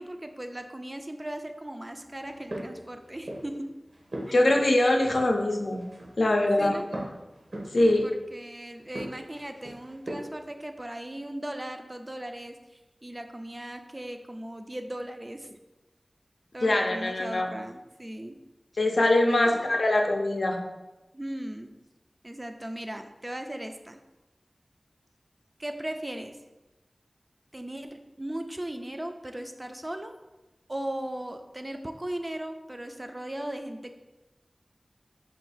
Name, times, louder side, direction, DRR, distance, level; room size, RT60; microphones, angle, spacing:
voice 1, 0.0-3.8 4.3-4.4 6.6-6.9 8.0-15.6 16.5-18.4 19.3-19.7 21.1-21.8 22.2-24.0 25.6-26.4 27.5-30.2 30.7-33.9, right 1 dB, 25° right, 6 dB, 0.3 m, -38 dB
sound 1, 2.2-3.6 3.9-5.5 5.7-8.3 8.8-10.5, right 1 dB, 75° right, 1.0 m, -40 dB
voice 2, 4.3-5.8 6.2-6.8 7.7-8.1 16.6-17.5 18.8-20.6, left 1 dB, 75° left, 3 dB, 0.5 m, -23 dB
4.3 x 2.4 x 3.9 m, 1.0 s
wide cardioid pair, 60°, 0 cm